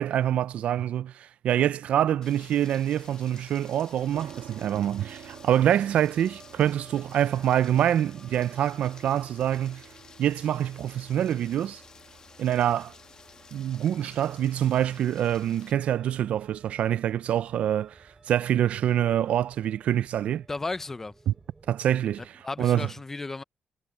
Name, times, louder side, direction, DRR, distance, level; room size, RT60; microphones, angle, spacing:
voice 1, 0.0-9.8 10.2-11.8 12.4-12.9 13.5-18.0 18.3-20.4 21.3-21.4 21.7-22.2 22.6-22.9, right 10 dB, 65° right, 0.4 m, -25 dB
Rain, 2.2-15.7, left 5 dB, 30° left, 1.5 m, -52 dB
sound 1, 4.1-19.0, right 10 dB, 80° right, 2.2 m, -52 dB
sound 2, 5.3-22.3, right 2 dB, 15° right, 2.6 m, -57 dB
voice 2, 20.5-21.1 22.4-23.4, left 3 dB, 15° left, 0.5 m, -34 dB
wide cardioid pair, 175°, 2 cm